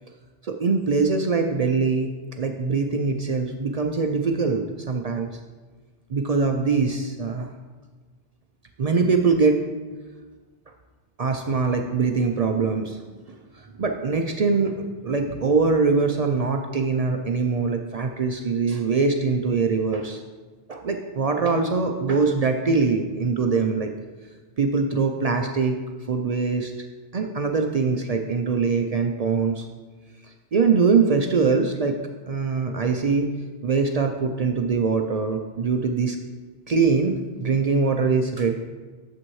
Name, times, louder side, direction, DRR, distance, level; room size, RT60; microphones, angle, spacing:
voice 1, 0.4-5.3 6.1-7.5 8.8-9.6 11.2-13.0 13.8-20.2 20.7-23.9 24.6-25.8 26.1-26.7 27.1-29.7 30.5-32.0 32.3-33.3 33.6-36.2 36.7-38.5, right 4 dB, 50° right, 4 dB, 0.5 m, -23 dB
8.9 x 7.0 x 3.1 m, 1.4 s
omnidirectional pair, 1.0 m